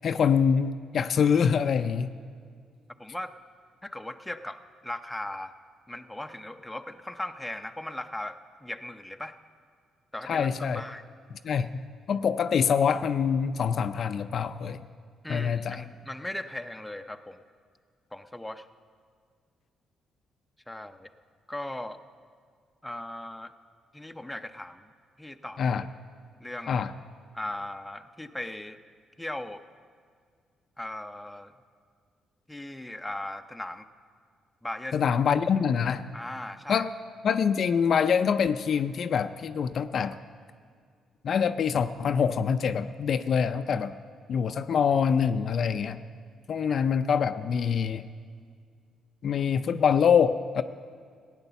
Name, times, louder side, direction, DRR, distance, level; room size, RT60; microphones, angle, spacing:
voice 1, 0.0-2.1 10.3-10.8 11.4-11.8 12.1-14.8 15.3-15.8 25.6-25.8 26.7-26.9 34.9-36.1 36.7-36.9 37.2-40.2 41.2-44.0 44.3-46.0 46.5-48.0 49.2-50.6, left 7 dB, 55° left, 10 dB, 0.4 m, -25 dB
voice 2, 3.0-3.3 3.8-5.5 5.9-9.4 10.1-10.5 10.7-11.0 15.2-17.4 18.1-18.6 20.7-21.1 21.5-22.0 22.8-23.5 23.9-24.9 25.2-25.8 26.4-26.8 27.3-28.8 29.2-29.6 30.8-31.5 32.5-33.9 34.6-35.1 36.1-36.8 46.7-46.8, left 1 dB, 5° left, 7 dB, 0.6 m, -38 dB
15.0 x 9.1 x 6.9 m, 2.1 s
cardioid pair, 90°, 0 cm